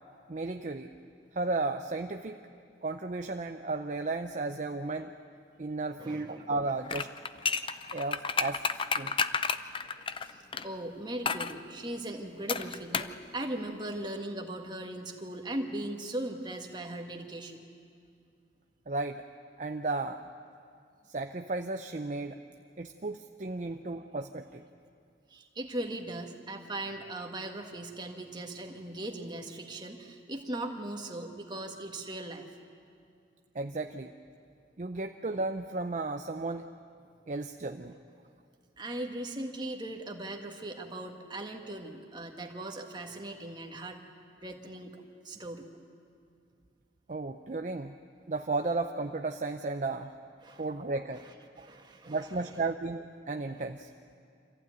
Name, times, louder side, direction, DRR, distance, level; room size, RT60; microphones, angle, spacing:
voice 1, 0.3-0.9 1.3-2.4 2.8-5.1 5.6-7.1 7.9-9.1 18.9-19.2 19.6-20.3 21.1-22.4 22.8-24.6 33.5-34.1 34.8-36.6 37.3-38.0 47.1-47.9 48.3-50.1 50.6-51.2 51.6-51.7 52.1-53.9, right 3 dB, 40° right, 6 dB, 0.6 m, -34 dB
voice 2, 6.0-6.5 9.8-9.9 10.2-17.6 23.6-23.8 25.3-32.5 37.9-38.0 38.8-44.0 44.4-45.7 50.4-50.6 51.1-52.6, right 1 dB, 25° right, 2 dB, 1.6 m, -39 dB
sound 1, 6.9-10.7 11.3-11.6 12.5-13.2 13.4-13.5, left 5 dB, 25° left, 0.5 m, -31 dB
26.0 x 15.0 x 9.3 m, 2.4 s
head